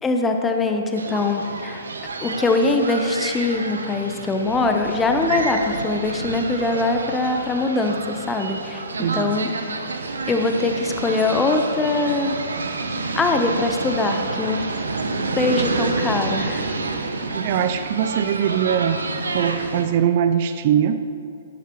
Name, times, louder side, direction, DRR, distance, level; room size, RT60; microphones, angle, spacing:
voice 1, 0.0-1.9 2.2-8.8 9.1-9.5 10.3-12.4 13.1-14.6 15.4-16.7, left 3 dB, 15° left, 4 dB, 0.9 m, -22 dB
sound 1, 0.9-19.9, right 3 dB, 90° right, 0.9 m, -29 dB
voice 2, 9.0-9.3 17.3-19.0 19.3-21.0, right 9 dB, 50° right, 10 dB, 0.5 m, -21 dB
13.5 x 10.0 x 3.1 m, 2.4 s
hypercardioid pair, 130°, 0 cm